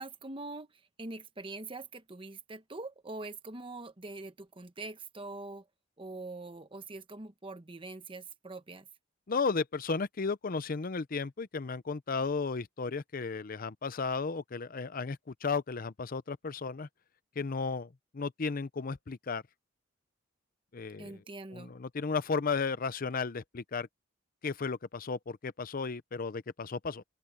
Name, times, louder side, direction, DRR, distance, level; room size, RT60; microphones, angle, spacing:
voice 1, 0.0-5.6 6.0-8.9 21.0-21.7, right 2 dB, 25° right, 1.1 m, -43 dB
voice 2, 9.3-16.9 17.4-19.4 20.7-21.2 21.5-23.9 24.4-27.0, left 4 dB, 45° left, 0.6 m, -34 dB
open air
head